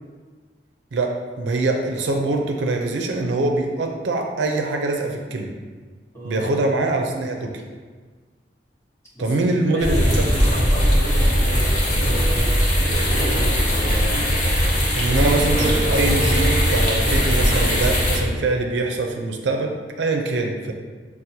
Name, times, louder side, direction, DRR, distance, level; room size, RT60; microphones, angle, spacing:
voice 1, 0.9-5.5 6.2-7.6 9.2-10.4 14.9-20.7, right 2 dB, 80° right, 2 dB, 0.4 m, -23 dB
voice 2, 6.1-6.5 9.1-14.3 15.0-15.9, right 1 dB, 15° left, -8 dB, 1.0 m, -34 dB
sound 1, 9.8-18.2, equal, 40° left, 0.7 m, -19 dB
6.0 x 2.0 x 2.7 m, 1.5 s
head